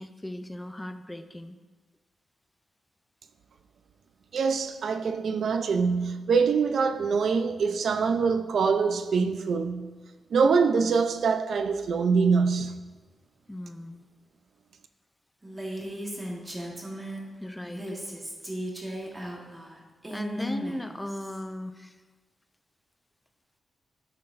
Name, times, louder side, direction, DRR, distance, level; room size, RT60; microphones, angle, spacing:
voice 1, 0.0-1.6 12.6-12.7 13.5-14.1 17.4-17.9 19.1-19.6 20.1-22.0, left 1 dB, 10° left, 0.4 m, -37 dB
voice 2, 4.3-9.9 10.3-12.7, right 5 dB, 70° right, 0.5 m, -24 dB
Female speech woman speaking, 15.4-17.3 17.6-21.4, equal, 20° right, 1.3 m, -36 dB
12.0 x 5.8 x 2.6 m
cardioid pair, 100°, 0 cm